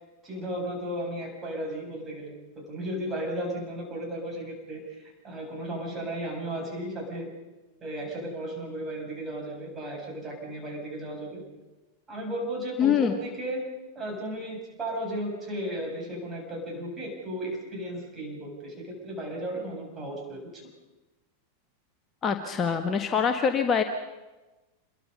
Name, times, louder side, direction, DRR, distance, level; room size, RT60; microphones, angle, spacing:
voice 1, 0.2-7.3 7.8-11.4 12.1-13.6 13.9-20.6, right 1 dB, 20° right, 0 dB, 7.9 m, -35 dB
voice 2, 12.8-13.1 22.2-23.8, left 7 dB, 25° left, 6 dB, 1.5 m, -24 dB
27.5 x 22.5 x 5.5 m, 1.1 s
figure-of-eight pair, 90°, 0 cm